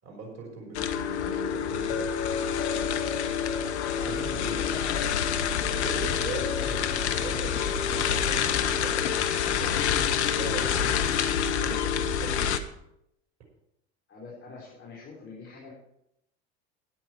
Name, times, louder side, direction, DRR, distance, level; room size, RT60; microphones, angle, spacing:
voice 1, 0.0-2.1 3.9-4.6 5.7-11.0 11.6-12.4, right 4 dB, 55° right, 1 dB, 5.1 m, -40 dB
sound 1, 0.7-12.6, left 8 dB, 80° left, 1.0 m, -27 dB
voice 2, 4.0-5.3 6.2-7.2 14.1-15.7, left 4 dB, 40° left, -5 dB, 4.5 m, -42 dB
13.0 x 9.9 x 4.7 m, 0.79 s
hypercardioid pair, 75°, 33 cm